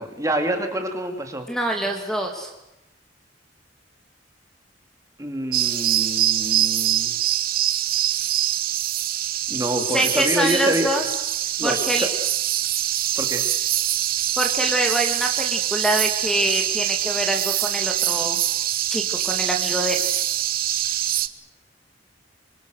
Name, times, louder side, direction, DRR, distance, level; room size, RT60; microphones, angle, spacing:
voice 1, 0.0-1.5 5.2-7.2 9.5-10.9 11.6-12.1 13.2-13.5, right 1 dB, 15° right, 5 dB, 2.7 m, -27 dB
voice 2, 1.5-2.5 9.9-11.0 11.6-12.1 14.4-18.4 18.9-20.0, right 1 dB, 5° left, 3 dB, 2.4 m, -25 dB
sound 1, 5.5-21.3, right 12 dB, 50° right, 0.9 m, -24 dB
27.0 x 24.0 x 6.5 m, 0.92 s
head